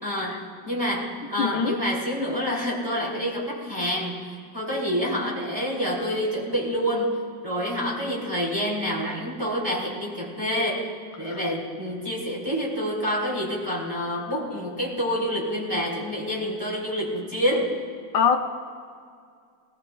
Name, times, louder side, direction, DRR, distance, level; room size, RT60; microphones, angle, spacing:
voice 1, 0.0-4.2 4.5-10.9 11.2-17.7, equal, 10° right, -4 dB, 3.0 m, -27 dB
voice 2, 1.4-1.8 11.3-11.4 18.1-18.4, left 7 dB, 75° left, 2 dB, 1.3 m, -23 dB
20.0 x 19.0 x 2.3 m, 2.2 s
omnidirectional pair, 2.0 m